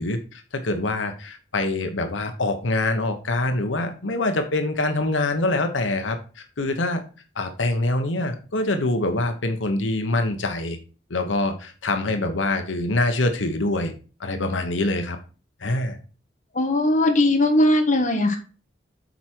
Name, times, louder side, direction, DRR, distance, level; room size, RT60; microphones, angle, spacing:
voice 1, 0.0-7.0 7.4-10.8 11.1-13.9 14.2-15.2 15.6-16.0, left 2 dB, 90° left, 6 dB, 1.0 m, -25 dB
voice 2, 16.5-18.4, left 1 dB, 40° left, 3 dB, 1.5 m, -19 dB
8.1 x 4.7 x 4.5 m, 0.36 s
head